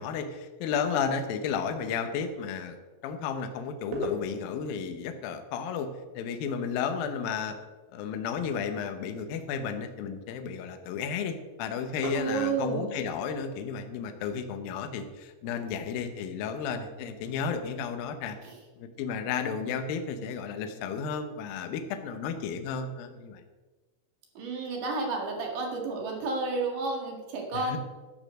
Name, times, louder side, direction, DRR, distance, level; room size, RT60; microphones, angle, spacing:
voice 1, 0.0-2.8 3.0-5.9 6.1-7.6 7.9-18.4 18.8-23.4 27.5-27.8, left 6 dB, 75° left, 7 dB, 2.3 m, -33 dB
sound 1, 3.7-18.2, left 1 dB, 90° right, 4.0 m, -45 dB
voice 2, 12.1-13.0 18.4-18.5 24.3-27.8, right 3 dB, 55° right, 1 dB, 3.1 m, -31 dB
12.0 x 6.5 x 6.4 m, 1.3 s
omnidirectional pair, 4.9 m